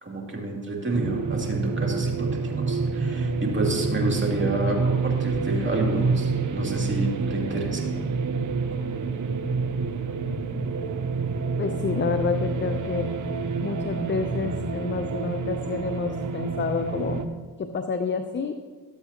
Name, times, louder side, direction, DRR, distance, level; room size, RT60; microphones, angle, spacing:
voice 1, 0.0-7.9, right 2 dB, 25° right, -1 dB, 2.6 m, -29 dB
sound 1, 0.9-17.3, right 4 dB, 40° right, 0.9 m, -28 dB
voice 2, 11.6-13.1 13.6-17.2 17.6-18.6, left 5 dB, 25° left, 7 dB, 0.6 m, -29 dB
13.0 x 7.9 x 2.9 m, 1.5 s
supercardioid pair, 55°, 46 cm